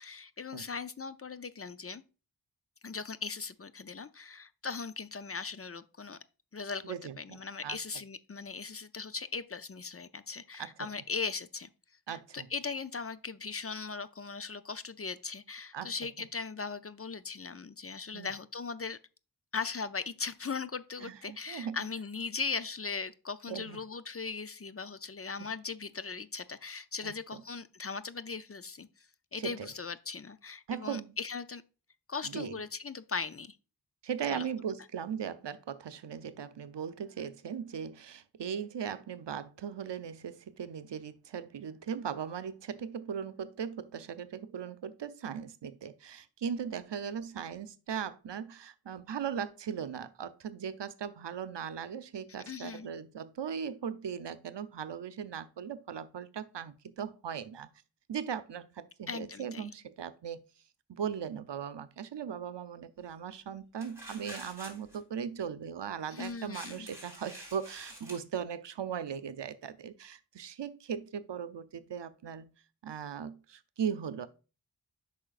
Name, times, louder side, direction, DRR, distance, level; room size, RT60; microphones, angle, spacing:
voice 1, 0.0-2.0 2.8-6.2 6.5-11.7 12.1-19.0 19.5-29.1 29.3-31.6 32.1-33.6 34.3-34.5 52.5-52.9 59.1-59.7 66.1-66.9, left 5 dB, 35° left, 0.5 m, -39 dB
voice 2, 6.8-7.8 10.6-10.7 12.1-12.5 15.7-15.9 18.1-18.3 21.0-21.8 23.5-23.8 27.0-27.4 29.3-29.7 30.7-31.1 32.2-32.6 34.0-57.7 58.1-60.4 60.9-72.5 72.8-74.3, right 7 dB, 85° right, 0.7 m, -38 dB
sound 1, 63.8-65.0 66.2-68.2, equal, 5° right, 3.5 m, -48 dB
8.7 x 5.7 x 2.5 m
wide cardioid pair, 75°, 41 cm